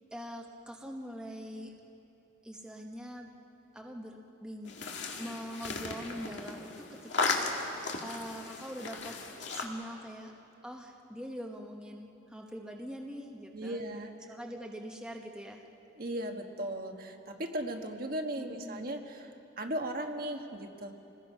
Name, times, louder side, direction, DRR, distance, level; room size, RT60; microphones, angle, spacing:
voice 1, 0.1-1.8 2.4-3.3 3.7-4.7 5.2-7.6 8.0-9.2 9.5-10.3 10.6-13.8 14.3-15.6 18.4-19.0, equal, 5° right, 0 dB, 1.2 m, -43 dB
sound 1, 4.6-9.7, left 3 dB, 70° left, 2.1 m, -36 dB
voice 2, 13.5-14.3 16.0-20.9, right 1 dB, 50° right, 3 dB, 1.4 m, -37 dB
28.0 x 19.5 x 5.6 m, 2.8 s
head